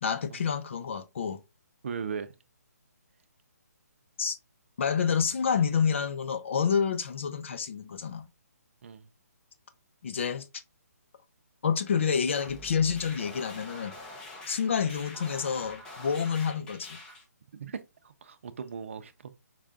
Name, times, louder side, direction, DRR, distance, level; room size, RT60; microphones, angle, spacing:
voice 1, 0.0-1.4 4.2-4.4 4.8-8.2 10.0-10.4 11.6-13.9 14.5-17.0, left 6 dB, 45° left, 0.8 m, -28 dB
voice 2, 1.8-2.3 8.8-9.1 17.5-19.3, right 6 dB, 50° right, 0.7 m, -38 dB
sound 1, 12.3-17.2, left 1 dB, 5° left, 0.6 m, -45 dB
5.4 x 2.5 x 3.5 m
hypercardioid pair, 165°, 9 cm